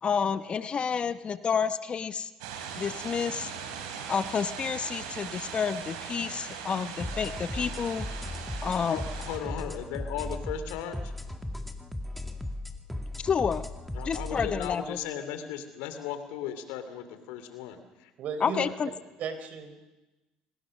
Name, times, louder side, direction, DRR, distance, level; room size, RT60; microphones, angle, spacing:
voice 1, 0.0-2.3 2.8-3.5 4.1-8.1 8.6-9.0 13.2-13.6 14.0-15.0 18.4-18.9, left 6 dB, 35° left, 12 dB, 0.9 m, -29 dB
sound 1, 2.4-9.4, right 7 dB, 90° right, 3.7 m, -39 dB
sound 2, 7.0-14.7, left 1 dB, 5° left, 2.2 m, -37 dB
voice 2, 8.9-11.1 13.9-18.1 18.5-18.7, left 9 dB, 80° left, 9 dB, 2.8 m, -37 dB
voice 3, 18.2-18.6 19.2-19.8, right 6 dB, 60° right, 9 dB, 3.9 m, -35 dB
26.0 x 19.5 x 6.4 m, 1.1 s
supercardioid pair, 85°, 3 cm